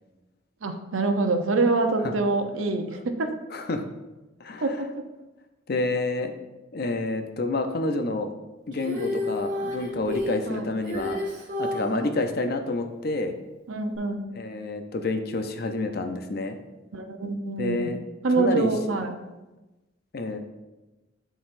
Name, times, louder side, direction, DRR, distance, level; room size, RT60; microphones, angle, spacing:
voice 1, 0.6-3.3 4.6-4.9 10.5-10.7 11.9-12.0 13.7-14.3 16.9-17.9 18.2-19.2, right 3 dB, 85° right, 6 dB, 0.7 m, -25 dB
voice 2, 3.5-3.8 4.4-4.6 5.7-6.3 6.7-8.3 8.7-11.2 11.6-13.4 14.4-16.6 17.6-18.0 18.4-18.7 20.1-20.4, left 2 dB, 50° left, 6 dB, 0.6 m, -28 dB
Female singing, 8.7-12.0 13.9-14.0, left 1 dB, 40° right, 2.3 m, -30 dB
12.0 x 4.0 x 2.6 m, 1.1 s
head